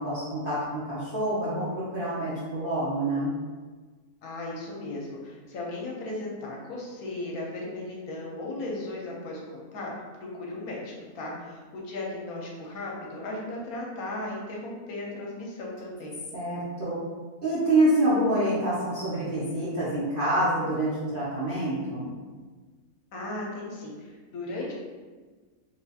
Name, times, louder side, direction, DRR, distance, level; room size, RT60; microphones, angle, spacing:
voice 1, 0.0-3.3 16.3-17.0 17.4-22.1, right 1 dB, 55° right, -9 dB, 0.6 m, -26 dB
voice 2, 4.2-9.9 10.2-16.2 23.1-24.8, left 2 dB, 75° left, -3 dB, 1.1 m, -36 dB
3.3 x 2.3 x 2.7 m, 1.4 s
omnidirectional pair, 1.6 m